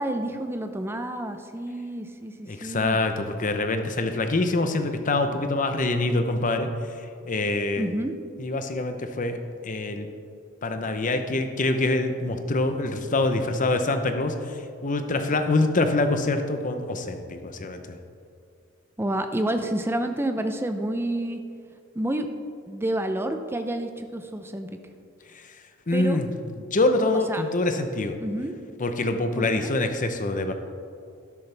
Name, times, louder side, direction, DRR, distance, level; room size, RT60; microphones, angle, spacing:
voice 1, 0.0-3.0 7.8-8.1 19.0-21.4 21.9-22.3 22.7-24.7 25.9-26.2 27.3-27.4 28.2-28.5 29.4-29.7, right 1 dB, 10° right, 7 dB, 0.5 m, -29 dB
voice 2, 2.4-6.7 7.0-7.9 8.4-9.4 9.6-10.1 10.6-18.0 25.3-25.4 25.9-28.2 28.8-30.5, left 2 dB, 40° left, 7 dB, 0.7 m, -25 dB
12.5 x 10.5 x 3.4 m, 2.4 s
head